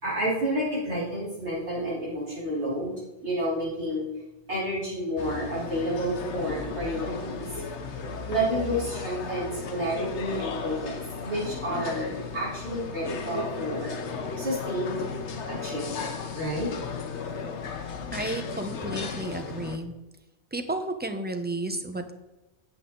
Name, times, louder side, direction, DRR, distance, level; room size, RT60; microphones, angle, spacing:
voice 1, 0.0-2.9 3.2-4.1 4.5-7.4 8.3-14.0 14.4-15.1 15.5-16.7, equal, 80° right, -6 dB, 4.4 m, -30 dB
sound 1, 5.2-19.8, left 5 dB, 85° left, 1.2 m, -35 dB
voice 2, 18.1-19.9 20.5-22.1, right 2 dB, 10° right, 7 dB, 0.8 m, -32 dB
9.9 x 8.4 x 3.9 m, 1.0 s
omnidirectional pair, 1.1 m